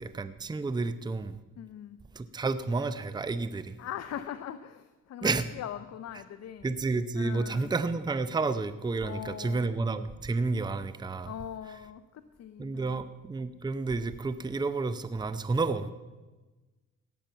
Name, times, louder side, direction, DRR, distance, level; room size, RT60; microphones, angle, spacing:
voice 1, 0.0-1.4 2.2-3.8 5.2-5.4 6.6-11.3 12.6-15.9, right 3 dB, 15° right, 12 dB, 0.6 m, -30 dB
voice 2, 1.6-2.0 3.8-6.7 7.1-7.7 9.0-9.7 11.3-13.0, left 10 dB, 60° left, 11 dB, 0.7 m, -41 dB
18.0 x 7.6 x 5.6 m, 1.2 s
cardioid pair, 90°, 30 cm